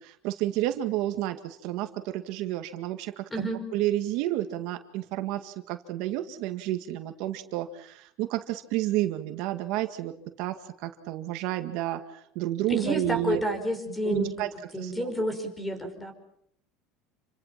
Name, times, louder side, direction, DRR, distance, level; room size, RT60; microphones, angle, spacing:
voice 1, 0.0-3.2 3.7-10.1 10.4-13.4 14.0-14.5 14.8-15.1, right 14 dB, 65° right, 7 dB, 1.9 m, -30 dB
voice 2, 3.3-3.6 12.7-14.3 14.7-16.1, equal, 10° left, 7 dB, 5.7 m, -30 dB
29.0 x 25.0 x 5.9 m, 0.70 s
supercardioid pair, 135°, 0 cm